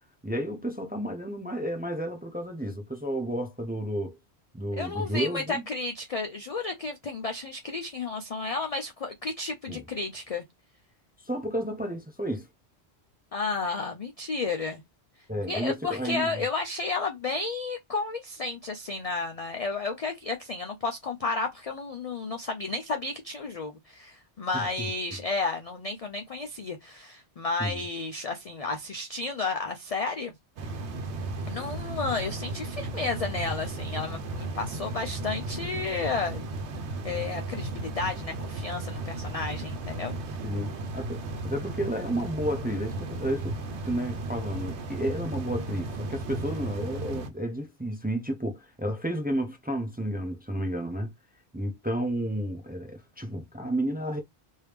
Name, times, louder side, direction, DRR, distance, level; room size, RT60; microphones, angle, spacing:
voice 1, 0.2-4.2 4.5-5.6 9.7-9.8 11.2-12.5 15.3-16.3 24.5-24.7 27.6-27.8 40.4-43.6 43.8-51.1 51.5-54.2, right 1 dB, 10° right, 0.4 m, -31 dB
voice 2, 4.8-10.4 13.3-14.8 15.5-30.3 31.5-36.5 37.0-40.4, left 3 dB, 55° left, 0.4 m, -32 dB
sound 1, 30.6-47.3, right 2 dB, 85° right, 0.9 m, -35 dB
3.1 x 2.7 x 3.3 m
omnidirectional pair, 1.1 m